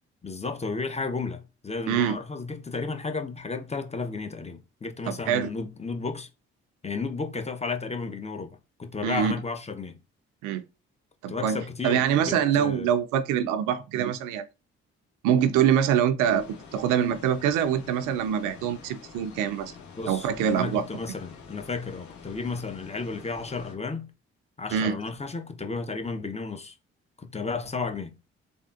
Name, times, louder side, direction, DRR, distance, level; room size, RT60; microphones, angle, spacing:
voice 1, 0.2-6.3 6.8-10.0 11.3-12.9 20.0-24.1 24.6-26.8 27.2-28.1, left 4 dB, 20° left, 0.7 m, -33 dB
voice 2, 1.9-2.2 5.1-5.5 9.0-9.3 10.4-10.7 11.2-14.4 15.2-19.7 20.1-20.8 24.7-25.0, right 9 dB, 80° right, 0.5 m, -24 dB
sound 1, 16.2-23.7, left 5 dB, 65° left, 1.2 m, -47 dB
3.5 x 2.3 x 2.5 m
hypercardioid pair, 45°, 31 cm